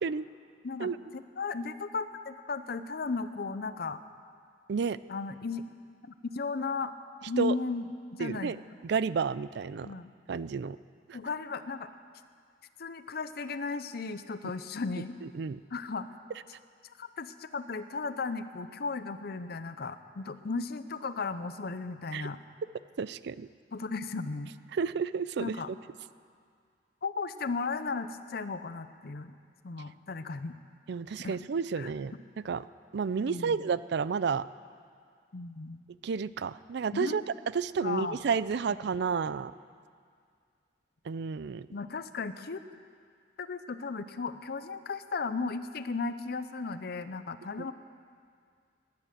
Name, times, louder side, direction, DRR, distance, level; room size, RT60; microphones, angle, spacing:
voice 1, 0.6-4.0 5.1-5.6 6.2-6.9 7.3-8.5 9.8-10.1 11.1-11.9 12.8-15.2 15.7-16.1 16.8-22.4 23.7-24.5 25.4-25.7 27.0-29.3 29.6-30.6 31.2-31.4 31.8-31.9 33.2-33.6 35.3-35.8 36.9-37.2 37.8-38.2 41.7-42.6 43.4-47.7, left 4 dB, 60° left, 11 dB, 0.6 m, -35 dB
voice 2, 8.2-8.6 8.8-9.9 10.3-10.8 11.1-11.2 15.2-15.6 22.1-22.3 23.0-23.5 24.7-25.6 30.9-32.1 32.4-32.6 32.9-34.4 36.0-37.2 37.5-39.5 41.1-41.7 47.6-47.7, right 5 dB, 65° right, 17 dB, 0.4 m, -31 dB
17.5 x 10.5 x 7.5 m, 2.1 s
head